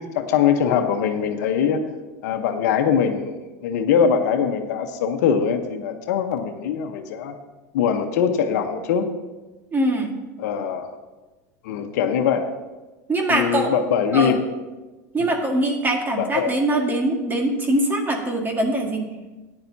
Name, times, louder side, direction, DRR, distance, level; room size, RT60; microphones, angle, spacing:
voice 1, 0.0-1.8 2.2-7.3 7.7-9.0 10.4-10.9 11.6-12.5 13.3-14.4 15.2-15.3 16.2-16.5, left 7 dB, 75° left, 6 dB, 1.0 m, -22 dB
voice 2, 9.7-10.2 13.1-13.7 14.1-14.3 15.1-19.1, right 1 dB, 20° right, 3 dB, 1.8 m, -22 dB
14.5 x 9.8 x 2.8 m, 1.2 s
hypercardioid pair, 105°, 9 cm